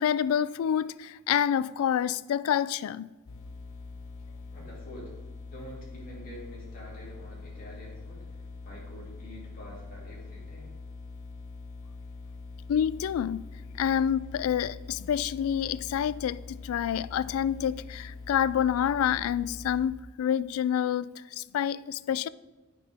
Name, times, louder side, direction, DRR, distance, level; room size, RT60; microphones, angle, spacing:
voice 1, 0.0-3.1 12.7-13.4 13.8-22.3, left 9 dB, 85° left, 0.3 m, -28 dB
sound 1, 3.3-19.9, left 4 dB, 70° left, 0.9 m, -43 dB
voice 2, 4.5-5.2 5.5-10.7, equal, 45° left, 2.6 m, -47 dB
9.3 x 5.7 x 3.5 m
head